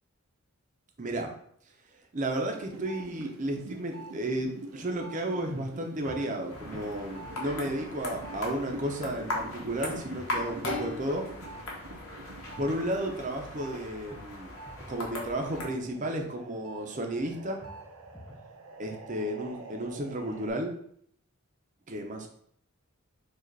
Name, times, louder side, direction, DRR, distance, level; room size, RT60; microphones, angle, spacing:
voice 1, 1.0-1.3 2.1-11.3 12.6-14.5 14.9-17.6 18.8-20.7 21.9-22.3, right 1 dB, 35° right, 3 dB, 0.6 m, -33 dB
sound 1, 2.5-13.8 14.1-20.5, right 2 dB, 75° right, 0.6 m, -46 dB
sound 2, 6.0-7.0 10.1-11.0 14.1-15.0 17.6-18.5, equal, 5° left, 0.5 m, -48 dB
sound 3, 6.5-15.6, left 2 dB, 85° left, 1.3 m, -39 dB
4.7 x 2.4 x 4.6 m, 0.66 s
head